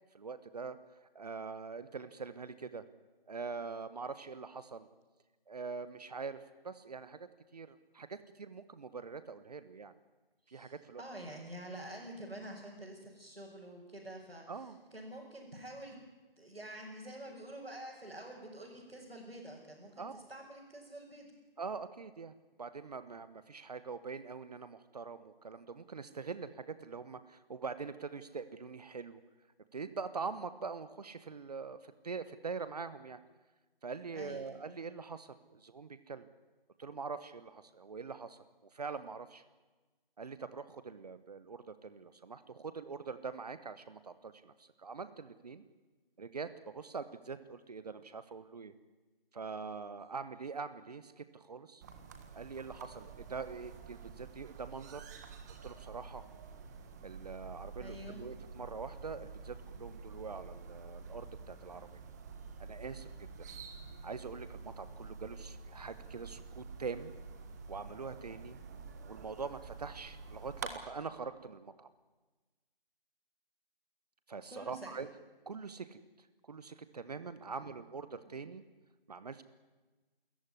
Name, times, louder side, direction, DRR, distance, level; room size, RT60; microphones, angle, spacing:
voice 1, 0.1-0.8 1.0-2.8 3.3-4.9 5.5-9.9 10.5-11.0 14.5-14.8 20.0-20.2 21.6-29.2 29.7-33.2 33.8-36.3 36.8-39.4 40.2-45.6 46.2-48.7 49.3-51.8 52.3-55.0 55.6-56.3 57.0-61.9 62.6-63.1 63.4-63.5 64.0-67.1 67.7-68.6 69.0-71.9 74.3-75.1 75.5-78.6 79.1-79.4, right 5 dB, 45° right, 13 dB, 1.1 m, -44 dB
voice 2, 10.5-14.4 14.9-15.9 16.4-21.3 34.1-34.5 57.8-58.2 74.5-74.8 77.4-77.6, right 1 dB, 85° right, -5 dB, 6.4 m, -48 dB
sound 1, 51.8-70.7, right 5 dB, 20° right, 1.4 m, -48 dB
27.0 x 14.0 x 9.8 m, 1.2 s
figure-of-eight pair, 155°, 29 cm